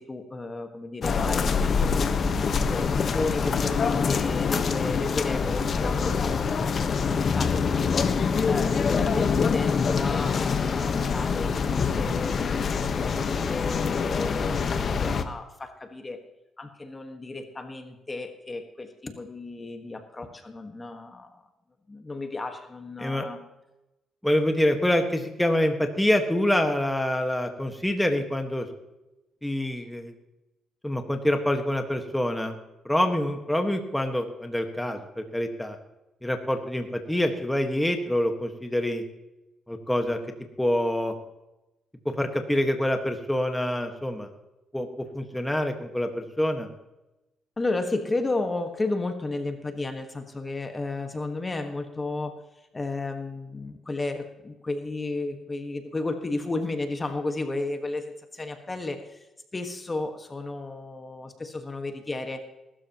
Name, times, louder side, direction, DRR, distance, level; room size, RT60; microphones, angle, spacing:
voice 1, 0.0-2.1 2.7-8.2 8.5-16.2 16.6-21.4 21.9-23.4 47.6-52.3 52.7-59.3 59.5-62.4, left 2 dB, 25° left, 6 dB, 1.5 m, -33 dB
sound 1, 1.0-15.2, left 5 dB, 50° left, 1.2 m, -25 dB
voice 2, 24.2-28.7 29.4-30.1 30.8-32.5 32.8-35.8 36.2-39.0 39.7-40.2 40.6-41.1 42.0-44.3 44.7-46.7, left 1 dB, 5° left, 5 dB, 1.6 m, -26 dB
20.5 x 13.0 x 3.0 m, 0.98 s
cardioid pair, 90°, 0 cm